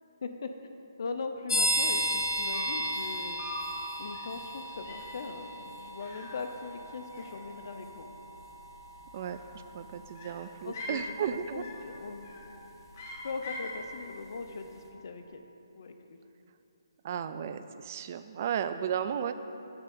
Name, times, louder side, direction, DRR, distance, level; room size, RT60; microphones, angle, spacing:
voice 1, 0.8-3.7 4.0-8.1 10.6-12.3 13.2-15.4 15.7-16.2, left 4 dB, 50° left, 6 dB, 0.7 m, -40 dB
sound 1, 1.5-14.0, equal, 70° left, 1.5 m, -36 dB
sound 2, 1.5-1.6 1.8-2.1 2.5-2.9 3.4-3.8 4.1-4.4 4.9-5.2 6.0-6.9 7.1-7.8 9.1-9.7 10.1-11.1 11.6-11.9 12.2-12.6 12.9-13.8, left 2 dB, 35° left, 1.1 m, -43 dB
voice 2, 9.7-11.6 17.0-19.3, right 8 dB, 30° right, 11 dB, 0.3 m, -34 dB
8.7 x 3.6 x 6.8 m, 2.9 s
hypercardioid pair, 165°, 2 cm